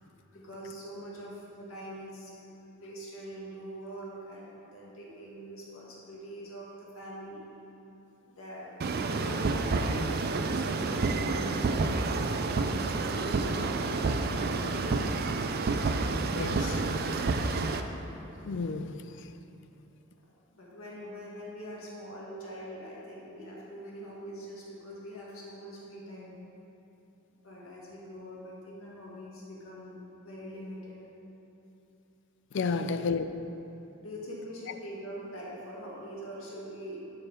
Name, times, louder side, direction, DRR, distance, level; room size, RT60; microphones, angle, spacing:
voice 1, 0.3-7.4 8.3-8.7 9.0-15.0 20.5-26.4 27.4-31.0 32.7-32.9 34.0-37.0, equal, 80° left, -5 dB, 2.0 m, -43 dB
sound 1, 8.8-17.8, right 3 dB, 50° right, 0.4 m, -29 dB
voice 2, 16.3-17.8 18.4-19.3 32.5-33.2, left 4 dB, 60° left, 10 dB, 0.4 m, -33 dB
12.0 x 4.9 x 4.6 m, 2.9 s
head